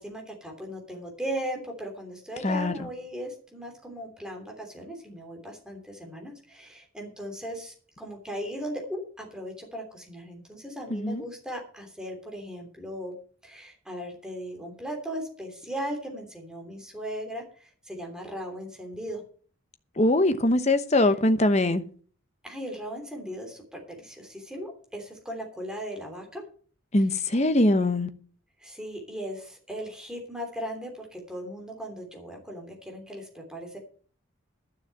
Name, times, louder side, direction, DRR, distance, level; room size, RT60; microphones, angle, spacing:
voice 1, 0.0-13.1 13.4-19.2 22.4-26.4 27.0-27.5 28.6-33.8, equal, 5° right, 3.1 m, -38 dB
voice 2, 10.9-11.2 20.0-21.8 26.9-28.1, left 1 dB, 30° left, 1.0 m, -22 dB
12.0 x 6.5 x 7.7 m
head